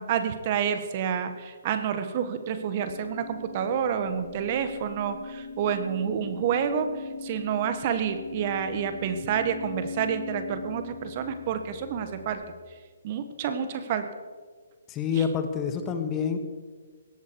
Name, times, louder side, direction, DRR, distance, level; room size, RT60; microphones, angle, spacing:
voice 1, 0.0-6.9 7.2-12.4 13.0-14.1 15.1-15.2, right 8 dB, 40° right, 9 dB, 1.4 m, -29 dB
sound 1, 2.2-12.4, left 4 dB, 60° left, 3.8 m, -41 dB
voice 2, 14.9-16.4, left 7 dB, 20° left, 7 dB, 1.5 m, -27 dB
18.0 x 13.0 x 4.8 m, 1.5 s
hypercardioid pair, 145°, 0 cm